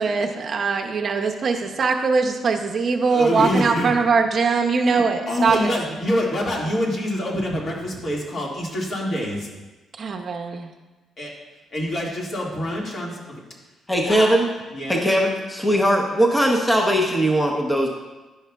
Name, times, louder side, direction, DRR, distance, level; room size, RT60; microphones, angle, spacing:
voice 1, 0.0-5.7 10.0-10.7, right 4 dB, 50° right, 4 dB, 0.6 m, -21 dB
voice 2, 3.1-3.9 4.8-9.5 11.2-11.3 11.7-13.2 14.0-14.3 14.7-15.0, equal, 50° left, -3 dB, 2.0 m, -26 dB
voice 3, 13.9-14.4 14.9-17.9, equal, 5° left, 0 dB, 0.9 m, -19 dB
10.5 x 5.5 x 2.3 m, 1.1 s
cardioid pair, 90°, 0 cm